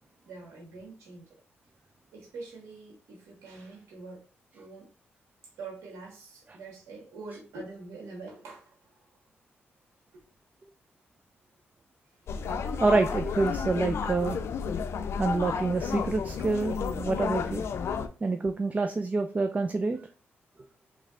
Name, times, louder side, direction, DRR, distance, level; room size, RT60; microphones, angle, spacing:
voice 1, 0.2-1.4 2.1-4.3 4.5-4.9 5.6-8.9 10.1-10.2 12.2-12.4, right 3 dB, 85° right, -1 dB, 1.5 m, -45 dB
sound 1, 12.3-18.1, left 6 dB, 70° left, 0.4 m, -32 dB
voice 2, 12.8-14.4 15.2-17.6 18.2-20.0, right 3 dB, 30° right, 7 dB, 0.4 m, -27 dB
3.3 x 3.2 x 3.7 m, 0.36 s
cardioid pair, 65°, 5 cm